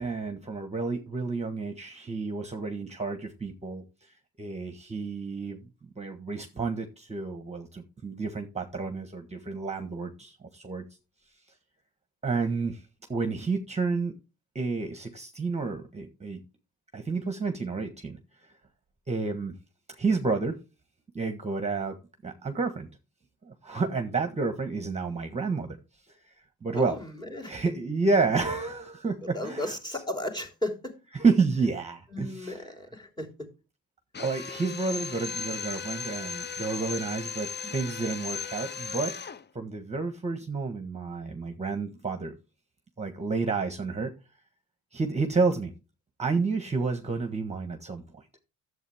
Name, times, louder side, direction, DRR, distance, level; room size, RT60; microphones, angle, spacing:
voice 1, 0.0-5.6 6.0-10.8 12.2-12.8 13.1-14.1 14.5-16.4 16.9-18.5 19.1-19.5 19.9-20.6 21.1-22.0 22.2-22.9 23.4-25.8 26.1-27.0 27.4-29.7 31.1-32.7 34.2-39.1 39.5-42.4 43.0-44.1 44.9-45.7 46.2-48.4, right 4 dB, 20° right, 1.4 m, -30 dB
voice 2, 26.7-27.5 29.2-30.9 32.1-33.5, left 1 dB, 10° left, 3.2 m, -35 dB
Drill, 34.1-39.4, left 6 dB, 30° left, 0.7 m, -36 dB
11.0 x 7.9 x 3.5 m
cardioid pair, 95°, 37 cm